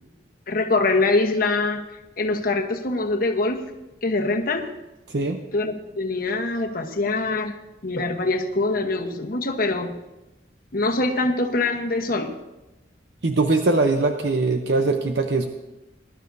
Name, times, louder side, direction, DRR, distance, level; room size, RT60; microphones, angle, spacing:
voice 1, 0.5-1.8 2.2-3.6 4.0-4.7 5.5-7.6 7.8-10.0 10.7-12.3, left 2 dB, 55° left, 3 dB, 1.1 m, -23 dB
voice 2, 5.1-5.4 13.2-15.5, right 3 dB, 70° right, 5 dB, 0.7 m, -21 dB
20.5 x 11.5 x 2.7 m, 1.0 s
head